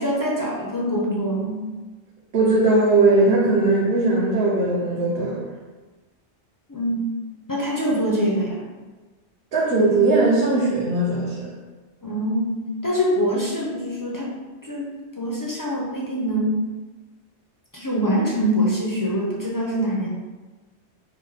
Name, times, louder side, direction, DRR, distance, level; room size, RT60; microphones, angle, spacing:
voice 1, 0.0-1.6 6.7-7.0 7.5-8.6 12.0-14.3 14.6-14.9 15.2-16.5 17.7-20.1, equal, 30° left, -4 dB, 0.3 m, -24 dB
voice 2, 2.3-5.4 9.5-11.5, right 2 dB, 60° right, -6 dB, 0.9 m, -19 dB
4.3 x 2.0 x 3.9 m, 1.3 s
omnidirectional pair, 1.2 m